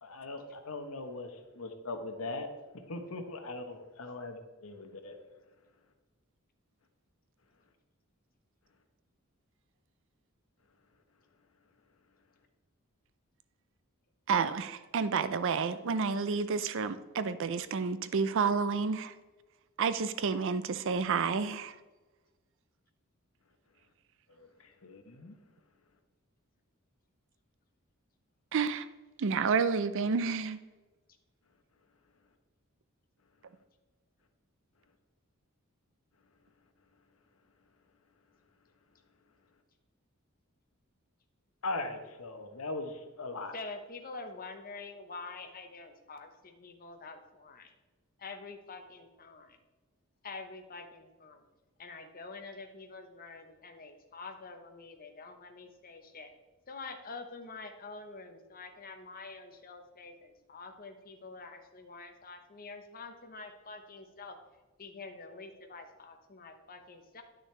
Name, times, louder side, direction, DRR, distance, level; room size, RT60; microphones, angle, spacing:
voice 1, 0.0-2.5 2.9-5.2 24.4-25.4 41.6-43.5, left 2 dB, 75° left, 1.0 m, -40 dB
voice 2, 14.3-19.1 19.8-21.7 28.5-28.9 29.2-30.6, right 5 dB, 65° right, 0.5 m, -30 dB
voice 3, 43.5-47.7 48.2-49.6 50.2-51.4 51.8-56.3 56.7-64.4 64.8-67.2, left 3 dB, 45° left, 0.9 m, -46 dB
10.0 x 6.3 x 3.3 m
head